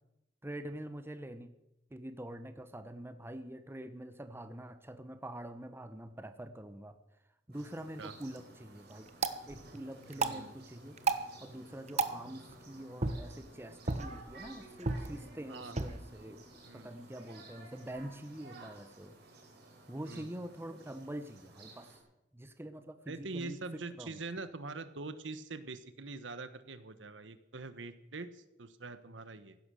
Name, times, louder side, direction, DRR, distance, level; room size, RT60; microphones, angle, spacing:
voice 1, 0.4-1.5 1.9-7.0 7.5-9.1 9.4-11.0 11.4-16.4 16.7-19.1 19.9-22.0 22.3-24.2, right 1 dB, 15° right, 10 dB, 0.9 m, -45 dB
sound 1, 7.5-22.0, right 2 dB, 60° right, 4.1 m, -55 dB
sound 2, 8.0-18.1, right 3 dB, 40° right, 1.1 m, -39 dB
voice 2, 10.1-10.5 15.5-15.8 16.6-16.9 18.5-18.7 20.1-20.3 23.1-29.6, right 3 dB, 80° right, 12 dB, 1.2 m, -44 dB
16.0 x 12.0 x 6.4 m, 0.89 s
head